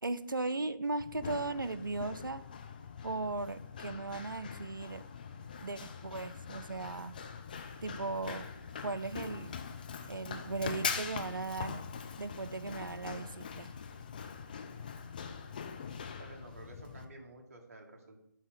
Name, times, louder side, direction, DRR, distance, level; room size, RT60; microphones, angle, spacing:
voice 1, 0.0-2.4 3.0-5.0 5.6-7.1 7.8-8.5 8.8-9.5 10.1-11.8 12.2-13.7, right 3 dB, 80° right, 14 dB, 0.4 m, -37 dB
Run, 1.0-17.0, left 6 dB, 25° left, 0.4 m, -43 dB
voice 2, 16.2-18.2, right 2 dB, 45° right, 3 dB, 1.2 m, -52 dB
8.0 x 2.9 x 5.9 m, 0.75 s
figure-of-eight pair, 145°, 11 cm